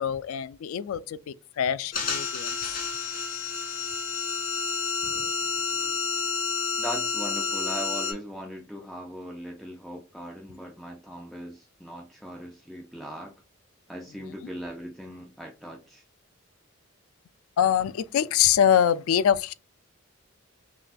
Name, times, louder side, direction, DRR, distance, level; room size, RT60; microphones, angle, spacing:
voice 1, 0.0-2.5 17.6-19.5, left 9 dB, 80° left, 0.3 m, -24 dB
sound 1, 1.9-8.1, left 4 dB, 45° left, 1.0 m, -30 dB
voice 2, 6.8-13.3 13.9-16.0, equal, ahead, 0.4 m, -39 dB
5.8 x 2.2 x 2.4 m
head